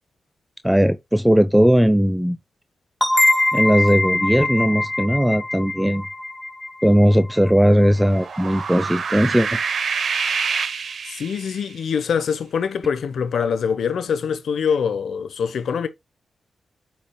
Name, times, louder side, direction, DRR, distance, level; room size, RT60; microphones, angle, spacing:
voice 1, 0.6-2.4 3.5-6.1 6.8-9.6, equal, 5° right, 0.7 m, -18 dB
sound 1, 3.0-8.4, left 2 dB, 15° left, 1.9 m, -23 dB
sound 2, 8.0-11.7, right 6 dB, 70° right, 0.9 m, -26 dB
voice 2, 11.1-15.9, left 6 dB, 75° left, 1.0 m, -24 dB
8.6 x 5.8 x 2.3 m
supercardioid pair, 45°, 0 cm